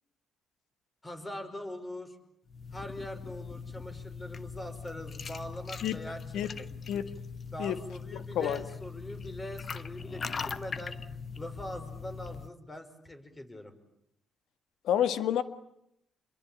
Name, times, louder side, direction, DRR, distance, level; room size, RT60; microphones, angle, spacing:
voice 1, 1.0-2.2 2.7-6.7 7.5-11.0 11.4-13.7, left 1 dB, 20° left, 8 dB, 5.2 m, -42 dB
sound 1, 2.5-12.5, left 5 dB, 40° left, 1.3 m, -41 dB
voice 2, 14.8-15.4, left 10 dB, 80° left, 12 dB, 1.7 m, -28 dB
27.5 x 23.0 x 8.8 m, 0.79 s
cardioid pair, 90°, 0 cm